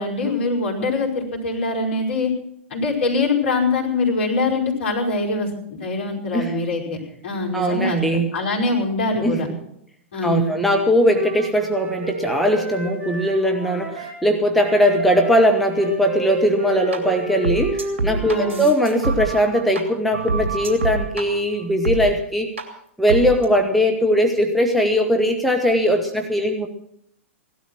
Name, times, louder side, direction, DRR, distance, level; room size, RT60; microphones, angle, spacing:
voice 1, 0.0-2.3 2.7-7.0 7.2-9.5 10.1-10.5 18.3-18.6, left 3 dB, 60° left, -2 dB, 5.3 m, -23 dB
voice 2, 7.5-8.3 9.2-9.6 10.2-22.5 23.0-26.7, equal, ahead, 3 dB, 1.3 m, -20 dB
Wind instrument woodwind instrument, 10.6-14.2 14.5-18.7, right 1 dB, 25° right, 4.0 m, -32 dB
sound 1, 16.9-17.0 17.4-19.8 20.1-21.2 21.8-22.0 22.6-22.7 23.1-23.4, right 3 dB, 65° right, 2.8 m, -25 dB
17.5 x 12.5 x 6.2 m, 0.70 s
figure-of-eight pair, 105°, 7 cm